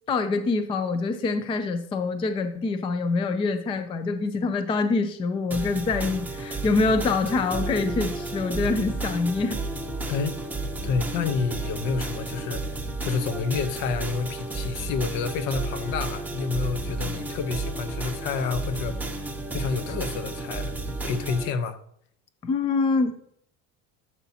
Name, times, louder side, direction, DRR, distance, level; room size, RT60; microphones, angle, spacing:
voice 1, 0.1-9.6 17.2-17.3 22.4-23.2, left 3 dB, 15° left, 0.4 m, -25 dB
sound 1, 5.5-21.5, right 2 dB, 5° right, 0.8 m, -32 dB
voice 2, 10.1-10.4 10.8-19.0 19.5-20.7 21.0-21.8, left 5 dB, 60° left, 1.0 m, -29 dB
12.5 x 7.1 x 2.8 m
cardioid pair, 155°, 36 cm